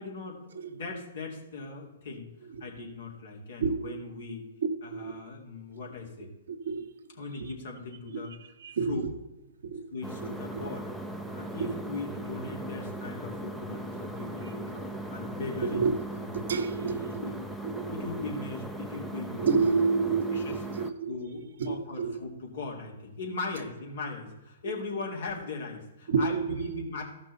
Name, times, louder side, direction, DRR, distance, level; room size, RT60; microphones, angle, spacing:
voice 1, 0.0-2.3 2.6-4.5 4.8-6.3 7.2-8.3 8.9-9.0 9.9-10.9 11.3-15.8 16.2-16.5 16.8-17.4 17.9-19.6 20.0-20.5 21.1-27.0, left 3 dB, 65° left, 0 dB, 2.8 m, -39 dB
voice 2, 3.6-4.0 4.9-5.1 6.5-7.0 7.3-7.5 8.1-8.2 8.6-9.1 9.6-9.8 10.5-10.6 11.6-11.8 15.6-16.0 16.2-17.4 17.6-18.0 19.3-21.1 21.6-22.2 26.1-26.8, right 5 dB, 70° right, 8 dB, 1.0 m, -29 dB
sound 1, 10.0-20.9, right 1 dB, ahead, 0.7 m, -38 dB
14.5 x 6.0 x 4.1 m, 1.0 s
hypercardioid pair, 120°, 0 cm